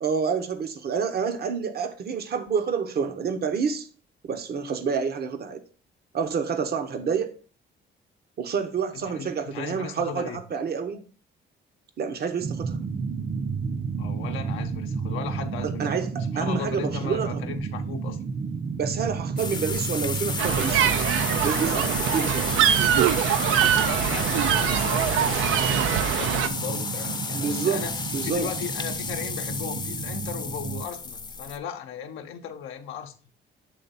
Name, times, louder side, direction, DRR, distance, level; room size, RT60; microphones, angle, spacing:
voice 1, 0.0-3.9 4.3-5.6 6.1-7.3 8.4-11.0 12.0-12.8 15.6-17.4 18.8-21.0 21.4-22.6 27.3-27.8 28.1-28.5, right 6 dB, 55° right, 0.8 m, -28 dB
voice 2, 8.9-10.4 14.0-18.2 23.6-33.1, left 8 dB, 85° left, 0.6 m, -37 dB
sound 1, 12.4-30.9, right 5 dB, 30° right, 0.6 m, -32 dB
sound 2, 19.4-31.6, left 4 dB, 20° left, 0.5 m, -32 dB
sound 3, 20.4-26.5, right 10 dB, 85° right, 0.4 m, -23 dB
7.5 x 3.3 x 4.0 m
cardioid pair, 90°, 20 cm